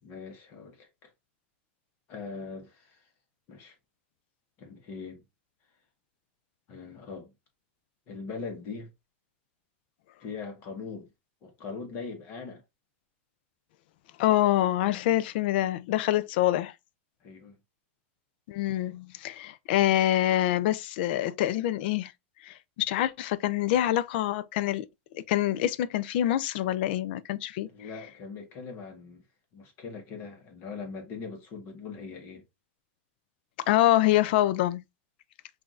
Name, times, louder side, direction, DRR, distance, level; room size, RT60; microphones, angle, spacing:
voice 1, 0.0-1.1 2.1-3.0 3.5-3.7 4.6-5.2 6.7-7.3 8.1-8.9 10.2-11.1 11.4-12.6 17.2-17.5 27.7-29.2 29.5-32.4, left 4 dB, 35° left, 1.2 m, -41 dB
voice 2, 14.2-16.7 18.5-22.1 22.4-24.9 25.1-27.7 33.7-34.8, left 13 dB, 50° left, 0.4 m, -25 dB
5.8 x 2.6 x 2.4 m
supercardioid pair, 165°, 7 cm